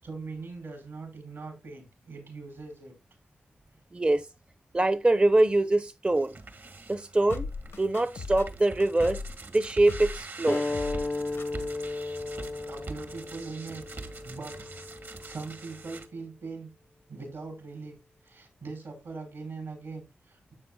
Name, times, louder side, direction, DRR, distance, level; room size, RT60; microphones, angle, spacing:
voice 1, 0.0-2.9 12.6-14.6 15.0-16.7 17.1-18.0 18.2-20.5, right 4 dB, 75° right, 5.1 m, -41 dB
voice 2, 3.9-4.3 4.7-6.3 6.9-7.5 7.8-9.2 9.5-10.6, right 2 dB, 25° right, 0.7 m, -24 dB
sound 1, 6.1-16.1, right 3 dB, 60° right, 1.7 m, -44 dB
sound 2, 7.3-9.4 9.9-10.2 10.5-11.1 11.4-11.5, left 4 dB, 85° left, 1.1 m, -38 dB
sound 3, 10.5-15.6, left 2 dB, 30° left, 0.5 m, -35 dB
12.0 x 7.6 x 2.2 m
cardioid pair, 40°, 4 cm